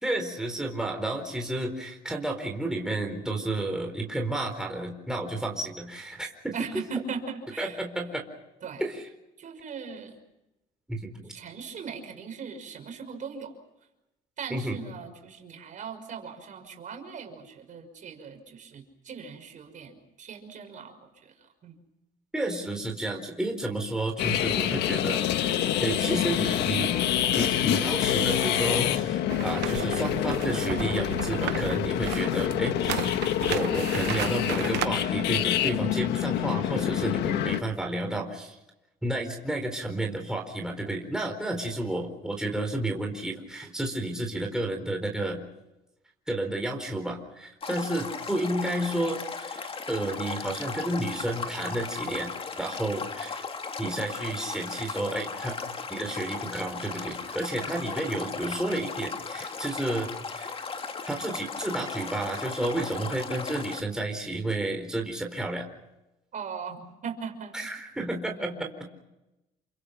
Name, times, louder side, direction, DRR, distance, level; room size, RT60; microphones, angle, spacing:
voice 1, 0.0-6.5 7.6-8.2 8.8-9.0 10.9-11.3 14.5-14.8 22.3-27.0 27.3-33.1 33.5-38.6 39.0-45.4 46.3-52.3 52.6-53.4 53.8-55.6 55.9-60.5 61.1-65.7 67.5-68.7, right 1 dB, 5° right, 2 dB, 4.3 m, -31 dB
voice 2, 6.5-7.8 8.6-8.8 9.4-10.2 11.3-13.6 14.4-21.8 66.3-67.7 68.3-68.9, right 6 dB, 50° right, 5 dB, 5.8 m, -39 dB
sound 1, 24.2-37.6, left 11 dB, 80° left, 1.7 m, -26 dB
sound 2, 29.3-34.9, right 16 dB, 85° right, 0.9 m, -34 dB
Stream, 47.6-63.8, left 5 dB, 35° left, 2.4 m, -36 dB
29.0 x 25.0 x 5.9 m, 0.95 s
cardioid pair, 110°, 17 cm